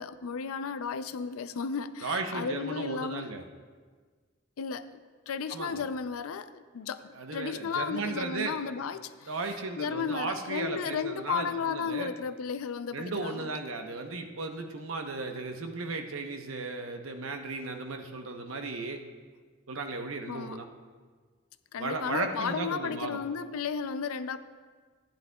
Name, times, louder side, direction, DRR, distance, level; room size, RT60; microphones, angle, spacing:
voice 1, 0.0-3.3 4.6-5.0 5.3-7.0 7.3-9.3 9.8-13.5 20.3-20.6 21.7-24.4, left 6 dB, 85° left, 12 dB, 0.4 m, -34 dB
voice 2, 2.0-3.4 5.5-5.9 7.1-8.6 9.3-12.1 12.9-19.0 19.7-20.7 21.8-23.2, right 3 dB, 70° right, 4 dB, 0.9 m, -35 dB
14.5 x 10.5 x 2.3 m, 1.5 s
head